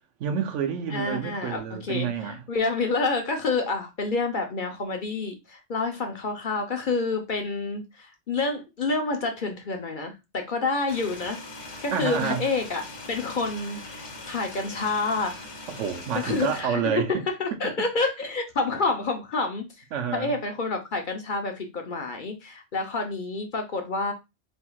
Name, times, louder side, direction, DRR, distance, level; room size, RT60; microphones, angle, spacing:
voice 1, 0.2-2.4 11.9-12.4 15.7-17.2 19.9-20.3, right 7 dB, 80° right, 1.0 m, -28 dB
voice 2, 0.9-12.8 13.1-15.4 16.1-19.6 20.1-24.1, left 3 dB, 50° left, 0.7 m, -28 dB
sound 1, 10.9-16.6, left 2 dB, 65° left, 1.3 m, -41 dB
4.4 x 3.5 x 2.2 m
omnidirectional pair, 1.3 m